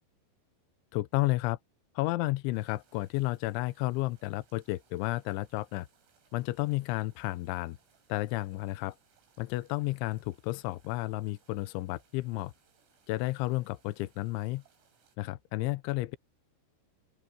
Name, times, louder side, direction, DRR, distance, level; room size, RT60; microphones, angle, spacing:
voice 1, 0.9-1.6 2.0-5.9 6.3-7.8 8.1-9.0 9.4-12.5 13.1-14.6 15.2-16.2, left 19 dB, 80° left, 2.8 m, -32 dB
sound 1, 2.5-15.2, right 6 dB, 80° right, 9.1 m, -68 dB
open air
omnidirectional pair, 5.9 m